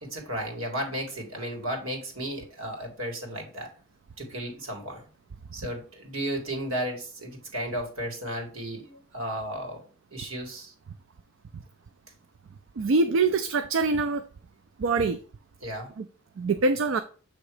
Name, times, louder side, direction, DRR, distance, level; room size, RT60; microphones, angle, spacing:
voice 1, 0.0-3.7 4.2-5.1 5.5-9.8 10.1-10.7 15.6-15.9, right 1 dB, 85° right, 2.0 m, -34 dB
voice 2, 12.8-14.3 14.8-15.2 16.0-16.1 16.4-17.0, right 3 dB, 70° right, 0.4 m, -24 dB
7.1 x 3.0 x 4.8 m
head